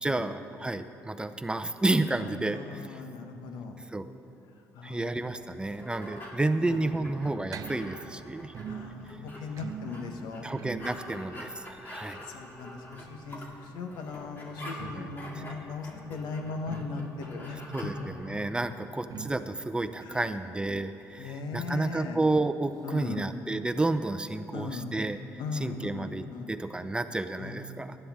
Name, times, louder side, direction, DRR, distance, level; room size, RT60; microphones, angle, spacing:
voice 1, 0.0-2.8 3.9-4.1 4.8-8.5 10.4-12.2 15.0-15.1 15.4-15.5 17.7-25.2 25.5-28.0, right 2 dB, 15° right, 10 dB, 0.5 m, -31 dB
voice 2, 2.2-3.8 4.7-5.1 6.7-6.9 8.7-10.5 11.9-18.3 20.0-20.4 21.2-22.2 22.8-23.3 24.5-25.0 25.4-26.5 27.4-27.7, left 4 dB, 85° left, 5 dB, 1.1 m, -39 dB
sound 1, 5.3-17.9, left 1 dB, 30° left, 2.2 m, -46 dB
sound 2, 5.8-13.4 14.5-21.9 22.2-22.3 22.5-22.6 23.3-23.4, right 7 dB, 60° right, 0.5 m, -46 dB
16.0 x 11.5 x 3.6 m, 2.8 s
cardioid pair, 80°, 7 cm